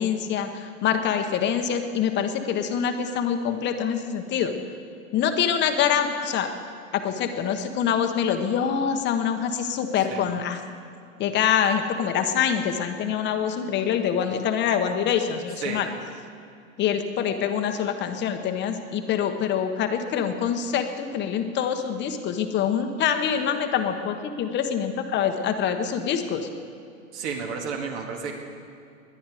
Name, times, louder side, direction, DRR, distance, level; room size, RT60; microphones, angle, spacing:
voice 1, 0.0-4.6 5.1-6.5 6.9-10.6 11.2-15.9 16.8-26.5, left 8 dB, 25° left, 7 dB, 1.1 m, -25 dB
voice 2, 10.0-10.3 15.6-15.8 27.1-28.3, right 5 dB, 55° right, 2 dB, 2.2 m, -32 dB
20.0 x 10.5 x 5.0 m, 2.5 s
hypercardioid pair, 135°, 40 cm